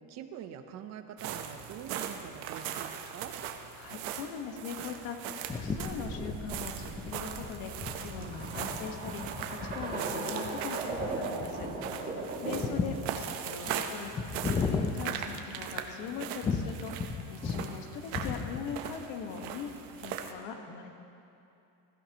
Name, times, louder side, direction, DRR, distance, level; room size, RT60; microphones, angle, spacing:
voice 1, 0.1-3.3 12.4-12.8, right 9 dB, 45° right, 7 dB, 0.9 m, -44 dB
sound 1, 1.2-20.3, right 8 dB, 65° right, 1.1 m, -40 dB
voice 2, 3.7-7.7 8.0-11.7 11.9-20.9, left 6 dB, 65° left, 4 dB, 1.6 m, -41 dB
sound 2, 5.5-15.9 16.4-17.8 18.0-18.9, left 5 dB, 15° left, 0.4 m, -36 dB
sound 3, 5.7-12.8, right 3 dB, 25° right, 2.4 m, -38 dB
21.0 x 15.0 x 3.0 m, 2.8 s
cardioid pair, 170°, 38 cm